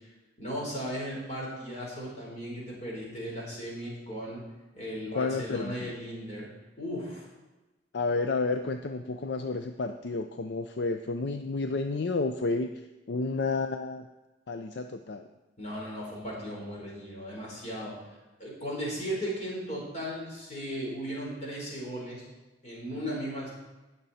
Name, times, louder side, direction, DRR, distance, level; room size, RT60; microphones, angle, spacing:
voice 1, 0.4-4.4 4.7-6.5 6.8-7.3 15.6-17.9 18.4-22.3 22.6-23.5, equal, 40° left, -4 dB, 4.2 m, -36 dB
voice 2, 5.1-5.9 7.9-12.7 13.1-14.0 14.5-15.3, left 3 dB, 65° left, 7 dB, 0.5 m, -31 dB
18.0 x 6.8 x 4.2 m, 1.1 s
head